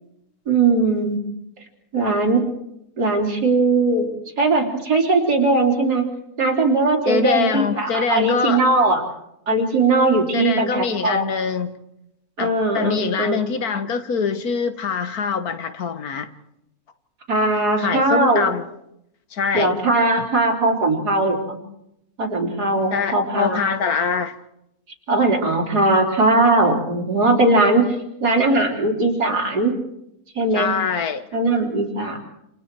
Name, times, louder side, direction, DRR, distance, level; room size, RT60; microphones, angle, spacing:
voice 1, 0.5-1.2 1.9-2.5 3.0-6.1 6.4-9.0 9.5-11.3 12.4-13.4 17.3-18.5 19.5-21.6 22.2-23.6 25.1-27.9 28.2-29.7 30.4-30.7 31.3-32.2, right 2 dB, 85° right, 4.1 m, -19 dB
voice 2, 7.1-8.6 10.3-11.8 12.4-16.3 17.8-18.6 19.3-19.7 20.2-20.3 22.9-24.3 30.5-31.2, left 6 dB, 70° left, 1.7 m, -24 dB
29.0 x 27.0 x 4.6 m
omnidirectional pair, 1.7 m